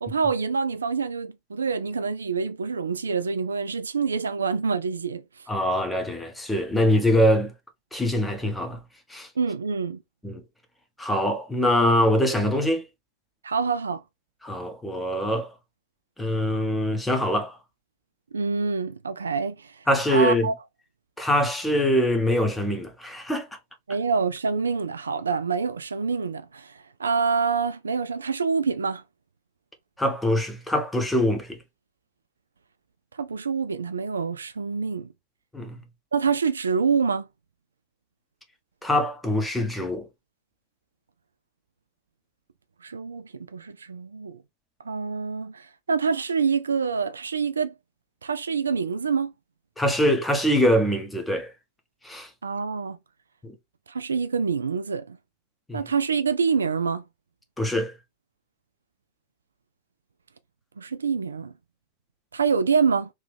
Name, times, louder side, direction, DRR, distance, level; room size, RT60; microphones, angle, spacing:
voice 1, 0.0-5.2 9.4-10.0 13.4-14.0 18.3-19.7 20.1-20.5 23.9-29.0 33.2-35.1 36.1-37.3 42.8-44.4 44.8-47.7 48.2-49.3 52.4-53.0 53.9-55.2 55.7-57.0 60.8-61.5 62.3-63.1, right 5 dB, 75° right, 0.3 m, -26 dB
voice 2, 5.5-7.5 7.9-8.8 9.1-9.3 10.2-10.4 11.0-12.8 14.4-15.5 16.2-17.6 19.9-20.5 21.2-23.5 30.0-31.6 35.5-35.8 38.8-40.1 49.8-51.5 52.0-52.3 53.4-53.5 55.7-55.8 57.6-57.9, equal, 5° left, 0.9 m, -23 dB
3.1 x 2.8 x 3.4 m
figure-of-eight pair, 90°, 0 cm